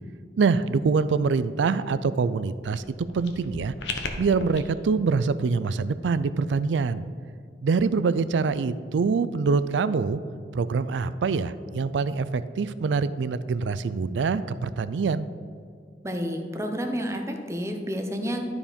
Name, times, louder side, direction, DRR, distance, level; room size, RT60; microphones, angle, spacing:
voice 1, 0.4-2.9 3.1-3.7 4.2-7.1 7.6-10.2 10.5-15.3, right 4 dB, 90° right, 14 dB, 0.4 m, -25 dB
sound 1, 2.7-4.6, left 4 dB, 75° left, 0.9 m, -36 dB
voice 2, 16.0-18.4, equal, 15° right, 5 dB, 0.8 m, -30 dB
12.0 x 4.9 x 5.2 m, 2.3 s
head